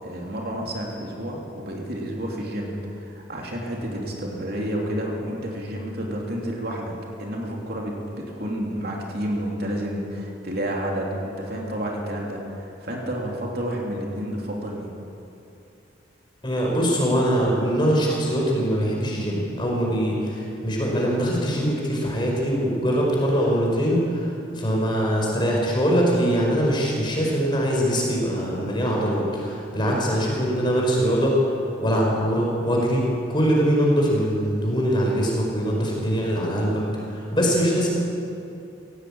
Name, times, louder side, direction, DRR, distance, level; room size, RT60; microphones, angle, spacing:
voice 1, 0.0-6.9 7.2-8.0 8.4-14.9 29.8-30.0, equal, 50° right, -1 dB, 3.2 m, -30 dB
voice 2, 16.4-24.3 24.5-31.4 31.8-33.0 33.3-36.8 37.1-37.9, equal, 25° left, -2 dB, 5.0 m, -22 dB
17.5 x 17.0 x 8.8 m, 2.7 s
head